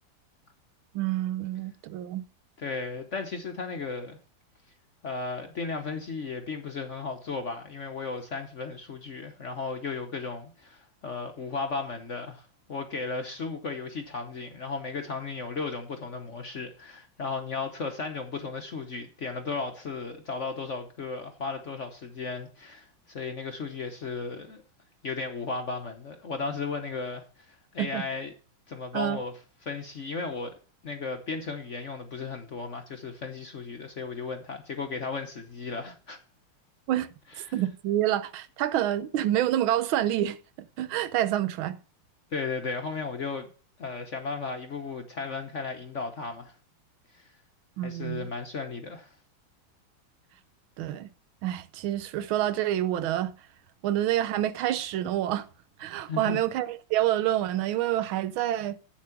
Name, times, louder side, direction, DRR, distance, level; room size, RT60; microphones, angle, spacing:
voice 1, 0.9-2.2 27.8-28.0 28.9-29.2 36.9-37.1 37.5-41.8 47.8-48.3 50.8-51.1 51.4-53.3 53.8-55.5 55.8-58.8, right 12 dB, 80° right, 1.5 m, -27 dB
voice 2, 2.6-4.2 5.0-24.6 25.0-28.3 28.7-29.3 29.6-30.5 30.8-36.2 37.4-37.6 42.3-43.5 43.8-46.6 47.1-47.3 47.8-49.2 56.1-56.4, left 4 dB, 50° left, 1.0 m, -35 dB
8.3 x 7.3 x 5.9 m
omnidirectional pair, 2.2 m